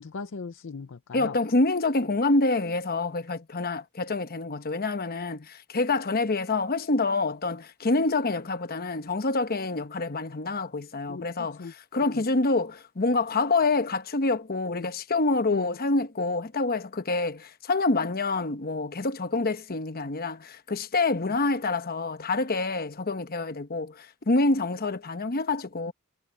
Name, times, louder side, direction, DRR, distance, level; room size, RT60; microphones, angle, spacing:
voice 1, 0.0-1.4 11.1-11.7 12.1-12.2 14.7-14.9 15.5-15.8 21.2-21.3 25.9-26.0, left 4 dB, 60° left, 0.6 m, -39 dB
voice 2, 1.1-25.9, left 3 dB, 45° left, 1.0 m, -27 dB
head